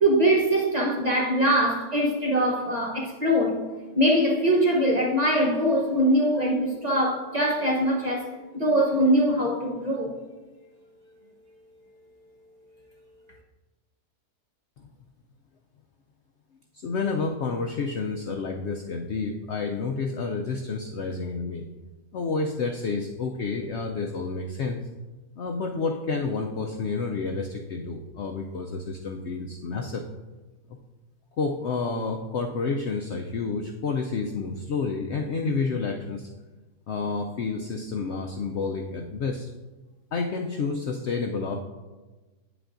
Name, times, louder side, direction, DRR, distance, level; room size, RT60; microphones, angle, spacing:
voice 1, 0.0-3.6 3.9-10.1, right 1 dB, 35° right, -3 dB, 0.7 m, -22 dB
voice 2, 16.7-21.6 22.1-24.8 25.4-30.0 31.4-36.3 36.9-39.5 40.1-41.6, left 4 dB, 85° left, 3 dB, 0.6 m, -29 dB
8.9 x 7.9 x 2.5 m, 1.2 s
omnidirectional pair, 1.7 m